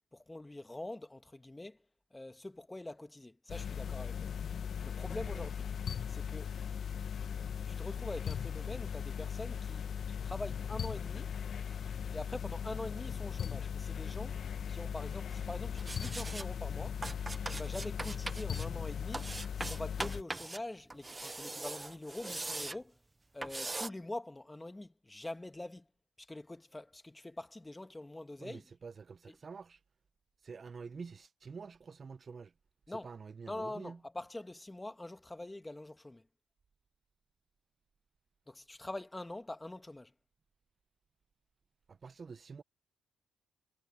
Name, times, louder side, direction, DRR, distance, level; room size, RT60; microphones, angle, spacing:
voice 1, 0.1-1.8 2.1-4.3 4.8-5.7 6.1-6.5 7.7-9.8 10.2-11.3 12.1-14.4 14.7-17.0 17.5-19.3 19.7-23.0 23.3-25.9 26.2-28.7 29.3-29.4 32.9-33.1 33.5-36.2 38.5-40.1, left 2 dB, 15° left, 1.8 m, -44 dB
sound 1, 3.5-20.2, left 7 dB, 55° left, 1.3 m, -38 dB
sound 2, 15.8-16.5 17.0-18.7 19.1-20.6 20.9-22.8 23.4-23.9, right 2 dB, 20° right, 0.8 m, -41 dB
voice 2, 28.4-29.8 30.4-32.5 33.0-34.0 41.9-42.6, right 5 dB, 40° right, 1.2 m, -48 dB
cardioid pair, 90°, 0 cm